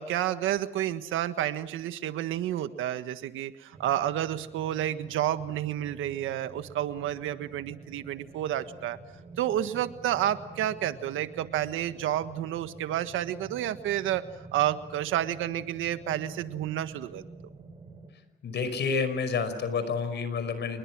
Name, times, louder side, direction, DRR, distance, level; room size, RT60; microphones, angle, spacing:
voice 1, 0.0-9.0 9.4-14.3 14.5-17.2, right 12 dB, 85° right, 10 dB, 1.5 m, -30 dB
sound 1, 3.7-18.1, right 3 dB, 30° right, 5.7 m, -48 dB
voice 2, 18.4-20.8, left 5 dB, 60° left, 11 dB, 5.3 m, -29 dB
29.0 x 22.0 x 6.2 m, 1.1 s
cardioid pair, 90°, 20 cm